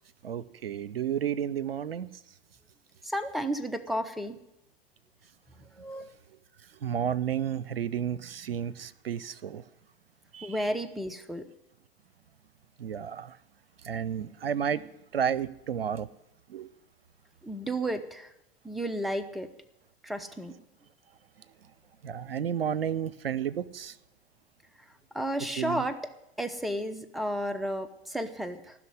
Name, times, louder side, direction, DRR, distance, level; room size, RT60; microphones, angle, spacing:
voice 1, 0.2-2.1 6.8-9.6 10.3-10.6 12.8-13.4 13.8-14.9 15.1-16.1 16.5-16.7 22.0-24.0 25.6-25.8, right 9 dB, 80° right, 17 dB, 0.6 m, -32 dB
voice 2, 3.0-4.4 5.7-6.1 10.4-11.5 17.4-18.3 18.6-19.5 20.0-20.5 25.1-26.0 26.4-28.7, right 1 dB, ahead, 9 dB, 0.9 m, -32 dB
15.0 x 6.2 x 9.5 m, 0.85 s
figure-of-eight pair, 85°, 29 cm